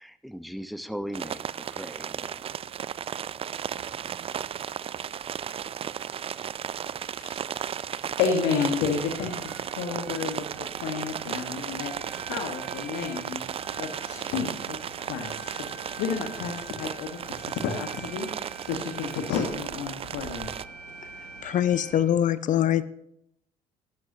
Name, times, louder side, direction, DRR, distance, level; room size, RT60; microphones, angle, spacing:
voice 1, 0.0-2.4, equal, ahead, 12 dB, 0.9 m, -38 dB
sound 1, 1.1-20.7, right 9 dB, 30° right, 0.4 m, -35 dB
voice 2, 7.2-7.7 8.0-18.3 18.6-20.5, left 6 dB, 65° left, 4 dB, 1.5 m, -31 dB
sound 2, 8.9-22.0, right 3 dB, 80° right, 1.7 m, -45 dB
voice 3, 21.4-22.8, left 10 dB, 40° left, 16 dB, 0.6 m, -23 dB
16.0 x 12.5 x 2.8 m, 0.75 s
figure-of-eight pair, 55°, 20 cm